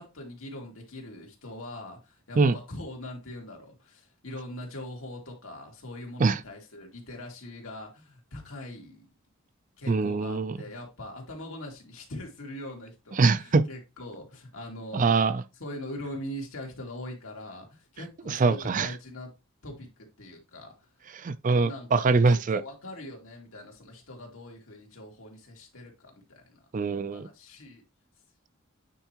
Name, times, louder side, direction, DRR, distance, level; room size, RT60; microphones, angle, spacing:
voice 1, 0.0-9.0 9.8-15.1 15.6-19.3 19.6-20.7 21.6-26.6 27.1-27.8, left 1 dB, 80° left, 2.6 m, -42 dB
voice 2, 9.9-10.6 13.2-13.7 14.9-15.4 18.3-18.9 21.1-22.6 26.7-27.3, right 4 dB, 40° right, 0.4 m, -23 dB
9.1 x 4.5 x 3.0 m
head